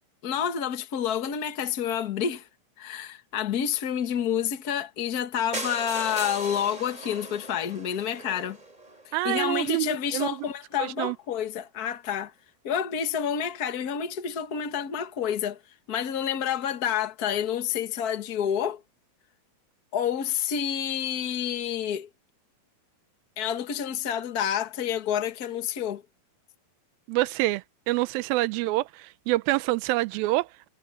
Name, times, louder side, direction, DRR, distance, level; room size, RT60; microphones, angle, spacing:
voice 1, 0.2-2.5 2.8-8.6 9.0-12.3 12.6-15.6 15.9-18.8 19.9-22.1 23.4-26.0, left 9 dB, 80° left, 0.8 m, -29 dB
sound 1, 5.5-9.4 10.1-10.2 10.4-10.5 10.8-10.9 11.1-11.2, right 2 dB, 10° right, 4.1 m, -38 dB
voice 2, 9.1-10.4 10.8-11.2 27.1-30.7, right 19 dB, 90° right, 2.5 m, -27 dB
omnidirectional pair, 4.1 m